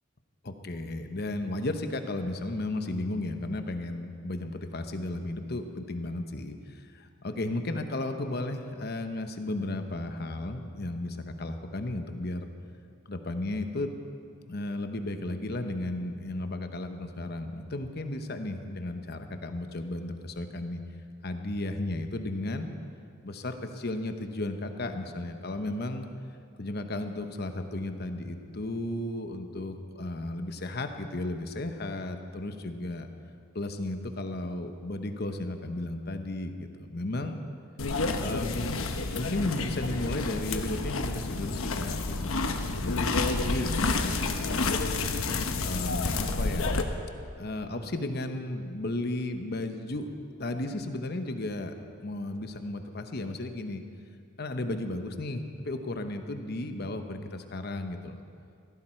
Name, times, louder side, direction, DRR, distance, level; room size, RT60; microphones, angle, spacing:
voice 1, 0.4-12.5 13.1-13.9 14.5-20.8 21.2-22.7 23.2-26.1 26.6-33.1 33.5-37.4 38.2-42.4 42.8-43.1 43.5-44.9 45.6-46.8 47.4-50.1 50.4-51.7 52.0-53.8 54.4-58.2, left 2 dB, 50° left, 7 dB, 1.0 m, -34 dB
sound 1, 37.8-46.8, left 3 dB, 90° left, 1.0 m, -29 dB
17.0 x 15.0 x 4.5 m, 2.4 s
head